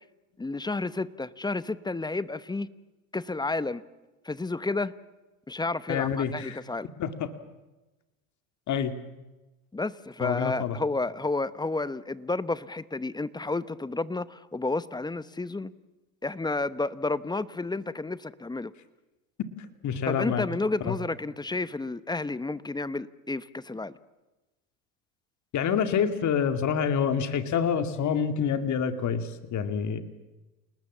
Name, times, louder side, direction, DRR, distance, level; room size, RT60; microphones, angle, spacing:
voice 1, 0.4-2.7 3.1-3.8 4.2-4.9 5.5-6.9 9.7-15.7 16.2-18.7 20.1-24.0, left 3 dB, 10° left, 17 dB, 0.9 m, -31 dB
voice 2, 5.9-6.6 7.0-7.3 8.7-9.0 10.2-10.8 19.8-20.4 20.8-20.9 25.5-30.0, left 7 dB, 40° left, 9 dB, 2.4 m, -27 dB
29.0 x 19.5 x 7.4 m, 1.1 s
hypercardioid pair, 85°, 43 cm